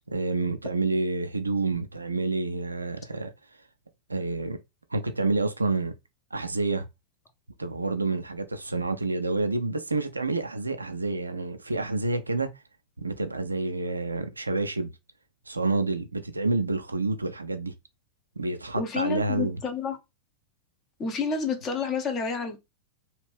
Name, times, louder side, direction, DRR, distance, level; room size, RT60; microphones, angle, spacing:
voice 1, 0.1-3.3 4.1-4.6 4.9-5.9 6.3-6.9 7.6-12.5 13.0-14.9 15.5-17.7 18.4-19.6, right 3 dB, 80° right, 0.4 m, -28 dB
voice 2, 18.8-20.0 21.0-22.6, left 5 dB, 30° left, 0.8 m, -29 dB
2.8 x 2.5 x 3.3 m
figure-of-eight pair, 90°, 0 cm